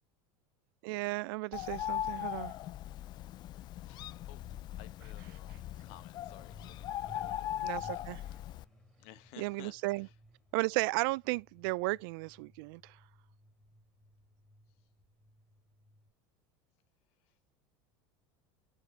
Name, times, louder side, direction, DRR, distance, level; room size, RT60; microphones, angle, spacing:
voice 1, 0.8-2.5 7.6-8.2 9.4-10.1 10.5-13.0, right 23 dB, 70° right, 0.4 m, -34 dB
Bird, 1.5-8.6, left 12 dB, 35° left, 0.4 m, -39 dB
voice 2, 3.8-4.5 4.8-8.3 9.0-10.1 14.8-14.9 17.2-17.6, left 14 dB, 60° left, 1.3 m, -57 dB
Truck, 3.8-16.1, left 1 dB, 5° left, 4.3 m, -59 dB
8.3 x 5.5 x 4.5 m
supercardioid pair, 145°, 12 cm